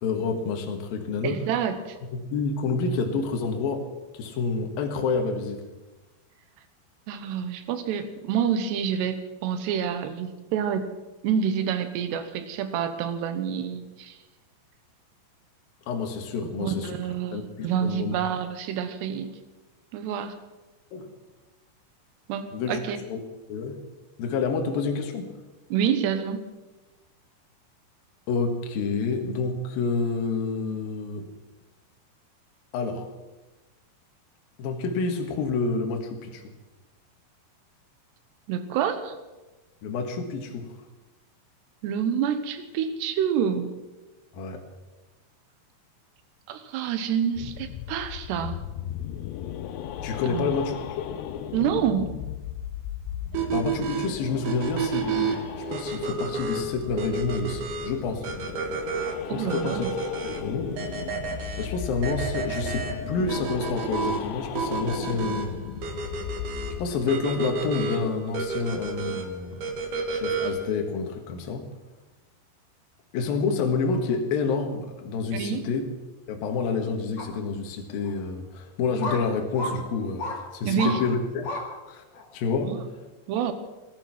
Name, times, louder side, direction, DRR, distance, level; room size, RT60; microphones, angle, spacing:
voice 1, 0.0-1.4 2.1-5.6 15.9-16.9 17.3-18.2 20.9-21.1 22.5-23.2 23.5-23.8 24.2-25.3 28.3-31.3 32.7-33.1 34.6-36.5 39.8-40.7 44.3-44.6 50.0-51.2 53.5-58.3 59.3-59.9 60.2-60.8 61.6-65.5 66.8-69.6 70.1-71.7 73.1-75.8 76.3-81.5 81.9-82.0 82.3-82.8, left 4 dB, 65° left, 3 dB, 3.1 m, -28 dB
voice 2, 1.2-2.0 7.1-10.9 11.2-14.2 16.4-19.3 19.9-20.3 22.3-23.0 25.7-26.4 38.5-39.2 41.8-43.7 46.5-48.6 50.2-50.6 51.5-52.1 59.3-60.0 75.3-75.7 80.6-81.0 82.6-82.8 83.3-83.5, right 8 dB, 80° right, 10 dB, 3.2 m, -28 dB
sound 1, 47.4-66.9, left 10 dB, 80° left, 2.9 m, -36 dB
sound 2, 53.3-70.7, right 4 dB, 60° right, 2.5 m, -31 dB
sound 3, 77.2-77.3 78.0-78.1 79.0-79.2 79.5-79.7 80.2-80.4 80.8-81.0 81.4-81.6 82.2-82.3, left 2 dB, 45° left, 3.2 m, -31 dB
18.0 x 12.5 x 6.0 m, 1.2 s
omnidirectional pair, 4.9 m